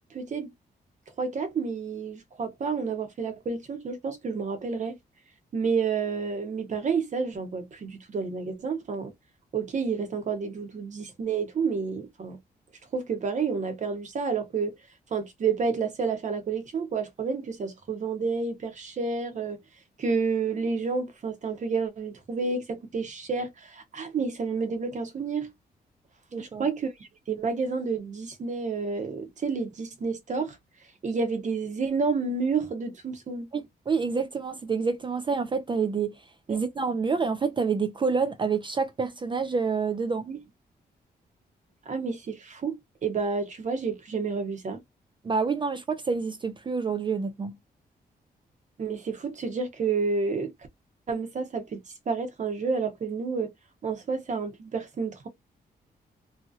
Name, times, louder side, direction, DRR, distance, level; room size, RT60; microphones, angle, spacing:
voice 1, 0.1-0.5 1.2-5.0 5.5-9.1 9.5-12.4 12.9-14.7 15.1-19.6 20.0-25.5 26.4-26.9 27.3-30.6 31.0-33.5 36.5-36.6 40.3-40.4 41.9-44.8 48.8-50.5 51.1-51.8 52.1-53.5 53.8-55.3, right 5 dB, 45° right, 0.9 m, -30 dB
voice 2, 26.3-26.6 33.5-36.1 36.5-40.3 45.2-47.6, right 5 dB, 30° right, 0.4 m, -28 dB
2.9 x 2.7 x 2.4 m
cardioid pair, 120°, 17 cm